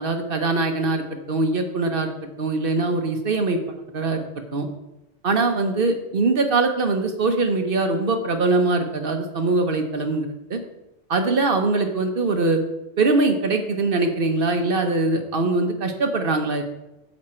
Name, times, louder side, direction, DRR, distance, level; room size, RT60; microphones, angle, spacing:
voice 1, 0.0-2.1 2.4-3.6 3.9-4.2 4.5-4.7 5.2-10.6 11.1-12.6 13.0-16.6, right 3 dB, 55° right, 6 dB, 1.1 m, -22 dB
8.6 x 7.3 x 4.4 m, 0.93 s
omnidirectional pair, 1.1 m